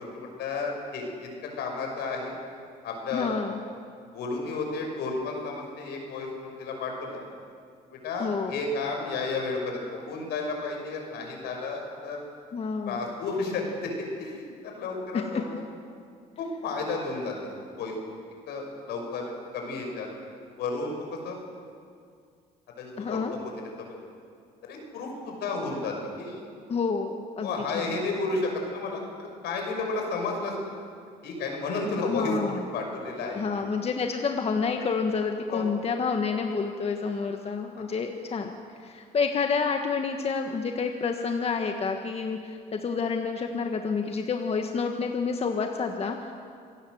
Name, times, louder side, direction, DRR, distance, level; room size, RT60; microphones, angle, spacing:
voice 1, 0.0-2.4 2.8-3.4 4.1-7.2 8.0-12.2 12.8-15.6 16.4-18.1 18.5-20.1 20.6-21.4 22.8-23.5 23.8-23.9 24.7-26.4 27.4-30.7 31.2-33.6 35.5-35.6 37.6-37.9, left 3 dB, 75° left, 2 dB, 6.2 m, -32 dB
voice 2, 3.1-3.6 8.2-8.5 12.5-13.0 23.0-23.3 26.7-27.9 32.1-32.6 33.3-38.5 38.8-46.3, left 5 dB, 35° left, 4 dB, 1.6 m, -29 dB
26.5 x 17.5 x 7.9 m, 2.3 s
cardioid pair, 110°, 17 cm